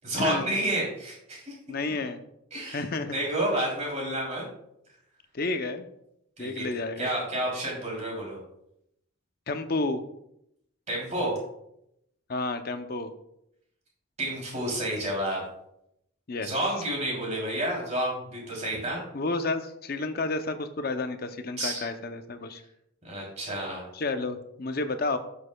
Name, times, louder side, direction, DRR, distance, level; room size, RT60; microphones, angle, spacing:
voice 1, 0.0-1.5 2.5-2.8 3.1-4.4 6.4-6.6 7.0-8.4 10.9-11.3 14.2-15.4 16.4-19.0 21.6-21.8 23.0-23.8, right 1 dB, 35° right, -3 dB, 3.1 m, -30 dB
voice 2, 1.7-2.2 2.7-3.2 5.3-5.9 6.4-7.1 9.5-10.0 12.3-13.1 16.3-16.5 18.7-18.8 19.1-22.6 23.9-25.2, left 3 dB, 45° left, 8 dB, 0.6 m, -31 dB
12.5 x 6.4 x 2.3 m, 0.78 s
head